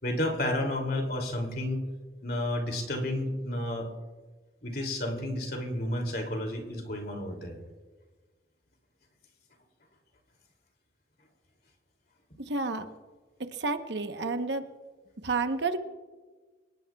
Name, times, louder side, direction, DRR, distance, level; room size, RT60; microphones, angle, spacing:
voice 1, 0.0-1.8 2.2-3.9 4.6-7.6, left 1 dB, 55° left, 3 dB, 2.8 m, -31 dB
voice 2, 12.4-12.9 13.5-14.6 15.2-15.8, right 3 dB, 70° right, 8 dB, 1.0 m, -30 dB
25.5 x 19.0 x 2.4 m, 1.4 s
head